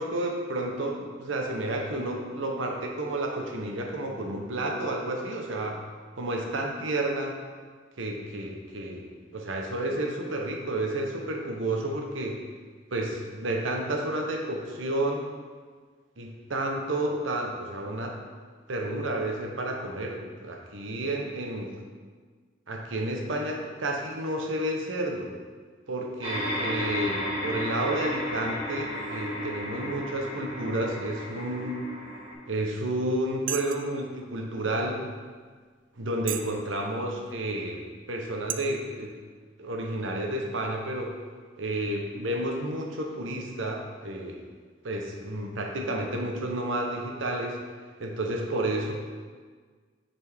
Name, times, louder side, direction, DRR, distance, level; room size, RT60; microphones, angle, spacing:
voice 1, 0.0-5.8 6.2-7.4 8.0-9.1 9.3-12.4 12.9-15.3 16.2-18.2 18.7-21.7 22.7-25.3 25.9-31.8 32.5-35.1 36.0-39.1 39.6-41.1 41.6-44.4 44.8-47.6 48.0-48.9, right 1 dB, 80° right, 1 dB, 0.9 m, -31 dB
sound 1, 26.2-32.3, left 1 dB, 30° right, 1.6 m, -33 dB
sound 2, 32.6-32.8 33.5-33.9 34.6-34.7 35.3-35.4 36.2-36.6 37.1-37.2 38.0-38.1 38.5-38.6, right 10 dB, 45° right, 0.3 m, -33 dB
7.2 x 4.3 x 3.5 m, 1.5 s
head